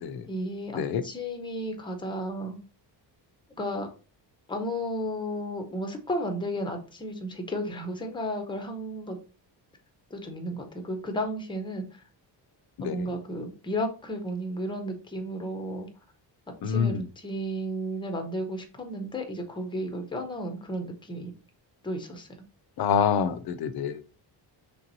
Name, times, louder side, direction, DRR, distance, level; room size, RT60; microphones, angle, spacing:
voice 1, 0.3-2.6 3.6-3.9 4.5-9.2 10.1-12.0 12.8-15.9 16.6-21.3 21.8-22.3, equal, 10° left, 4 dB, 0.6 m, -33 dB
voice 2, 12.8-13.1 16.6-17.0 22.8-24.1, left 7 dB, 55° left, 11 dB, 0.5 m, -27 dB
3.4 x 2.9 x 3.9 m, 0.36 s
cardioid pair, 155°, 45 cm